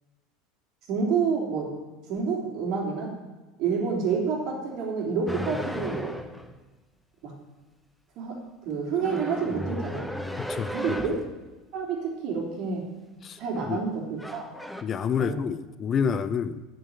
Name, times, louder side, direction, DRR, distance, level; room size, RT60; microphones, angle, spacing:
voice 1, 0.9-1.7 2.1-3.1 3.6-6.1 7.2-7.3 8.1-8.4 8.6-10.1 10.7-11.1 11.7-12.8 13.4-14.5 15.2-15.4, right 5 dB, 55° right, -1 dB, 3.4 m, -28 dB
sound 1, 5.3-6.5 9.0-11.3 13.4-13.8 14.2-14.8, left 1 dB, ahead, 1.0 m, -35 dB
voice 2, 10.5-11.0 13.2-13.4 13.7-13.8 14.8-16.7, left 7 dB, 35° left, 13 dB, 0.6 m, -28 dB
8.1 x 7.8 x 8.2 m, 1.2 s
hypercardioid pair, 75°, 0 cm